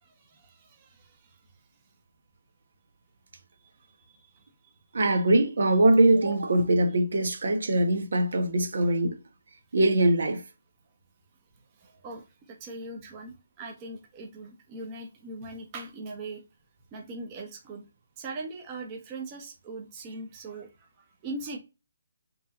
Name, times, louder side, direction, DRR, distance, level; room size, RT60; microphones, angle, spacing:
voice 1, 0.0-1.4 3.6-3.7 4.1-4.7 11.8-16.4 16.9-17.8 18.2-21.6, right 2 dB, 25° right, 1.0 m, -41 dB
voice 2, 4.9-9.2 9.7-10.4, right 1 dB, 65° right, 1.2 m, -22 dB
5.2 x 3.2 x 2.5 m
hypercardioid pair, 160°, 0 cm